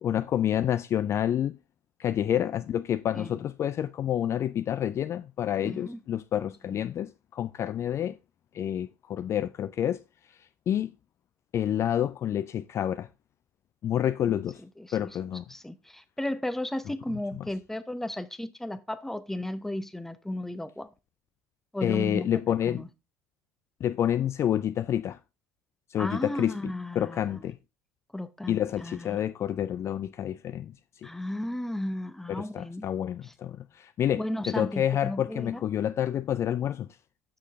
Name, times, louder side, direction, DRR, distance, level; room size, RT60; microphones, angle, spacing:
voice 1, 0.0-1.6 2.0-8.2 8.5-10.0 10.7-10.9 11.5-13.1 13.8-14.6 14.9-15.4 21.8-22.8 23.8-25.2 25.9-27.6 28.5-30.7 31.0-31.1 32.3-36.9, left 10 dB, 35° left, 0.3 m, -28 dB
voice 2, 5.6-6.0 6.4-6.8 14.2-14.4 14.8-15.1 15.5-20.9 21.7-22.3 22.7-22.9 26.0-27.4 28.1-29.2 31.0-32.9 33.2-33.3 34.2-35.6, left 1 dB, 5° left, 0.8 m, -34 dB
7.7 x 6.4 x 3.4 m
figure-of-eight pair, 70°, 8 cm